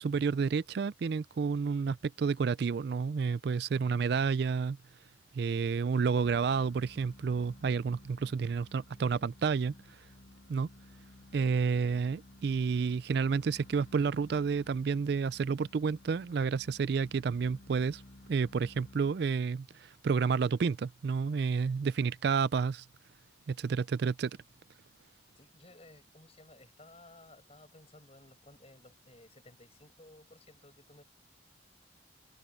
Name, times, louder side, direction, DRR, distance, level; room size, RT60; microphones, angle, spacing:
voice 1, 0.0-4.8 5.3-9.7 10.5-10.7 11.3-18.0 18.3-22.9 23.5-24.3, right 5 dB, 55° right, 0.3 m, -30 dB
sound 1, 6.1-19.5, left 2 dB, 55° left, 0.9 m, -56 dB
voice 2, 25.4-31.0, left 1 dB, 30° left, 7.6 m, -57 dB
head